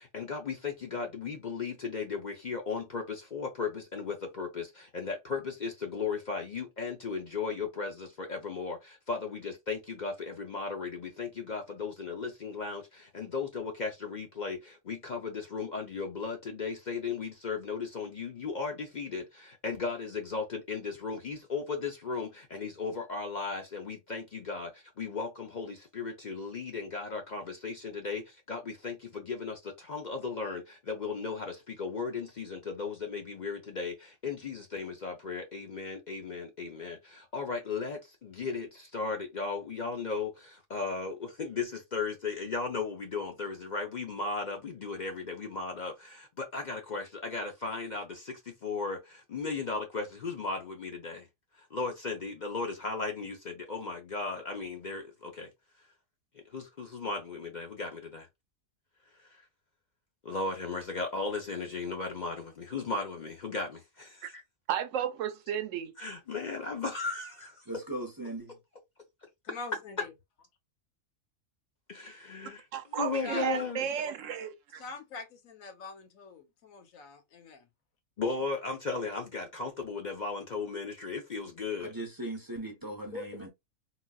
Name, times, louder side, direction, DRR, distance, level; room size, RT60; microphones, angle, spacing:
voice 1, 0.1-3.0 3.3-4.6 4.9-7.9 8.2-8.8 9.1-10.1 10.4-10.9 11.2-12.8 13.1-14.6 14.9-19.2 19.6-24.7 25.0-25.3 25.6-25.7 26.0-27.7 28.0-28.2 28.5-28.9 29.4-29.5 29.9-30.6 30.9-31.5 31.8-33.9 34.2-36.9 37.3-38.0 38.4-38.7 38.9-40.3 40.7-41.1 41.4-41.7 41.9-45.9 46.5-48.0 48.6-49.0 49.3-51.2 51.7-53.3 53.7-55.0 57.0-57.9 60.3-62.3 62.7-63.7 66.0-67.3 72.3-72.5 73.0-73.8 78.2-81.9 83.1-83.2, left 4 dB, 50° left, 0.6 m, -35 dB
voice 2, 64.7-65.9 72.7-74.8, right 9 dB, 75° right, 0.9 m, -33 dB
voice 3, 67.7-68.6 81.8-83.5, right 1 dB, 20° right, 0.6 m, -39 dB
voice 4, 69.5-70.1 73.2-73.4 74.7-77.7, left 4 dB, 90° left, 1.2 m, -44 dB
4.0 x 2.3 x 2.3 m
omnidirectional pair, 1.4 m